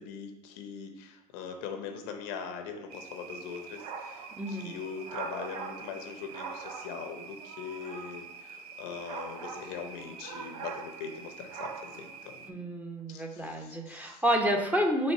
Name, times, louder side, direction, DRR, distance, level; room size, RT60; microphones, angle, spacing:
voice 1, 0.0-12.7 13.1-14.2, left 6 dB, 60° left, 5 dB, 0.7 m, -41 dB
sound 1, 2.9-12.5, right 5 dB, 75° right, 0.5 m, -42 dB
voice 2, 4.4-4.8 12.5-15.1, equal, 10° right, 1 dB, 0.8 m, -29 dB
4.1 x 2.6 x 4.6 m, 0.89 s
hypercardioid pair, 75°, 20 cm